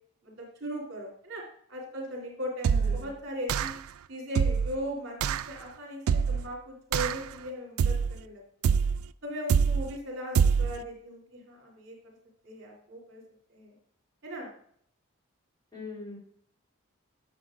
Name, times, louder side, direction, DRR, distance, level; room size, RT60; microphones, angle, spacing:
voice 1, 0.2-1.4 1.7-3.7 4.1-8.8 9.2-12.1 12.4-13.2 13.5-13.8 14.2-14.5, equal, 65° right, -2 dB, 3.3 m, -38 dB
sound 1, 2.6-3.1 3.5-3.9 4.3-4.8 5.2-5.5 6.1-6.5 6.9-7.3 7.8-8.2 8.6-9.1 9.5-9.9 10.3-10.8, right 6 dB, 85° right, 0.3 m, -25 dB
voice 2, 2.7-3.1 15.7-16.2, left 3 dB, 20° left, -5 dB, 2.7 m, -41 dB
10.0 x 7.2 x 2.5 m, 0.64 s
head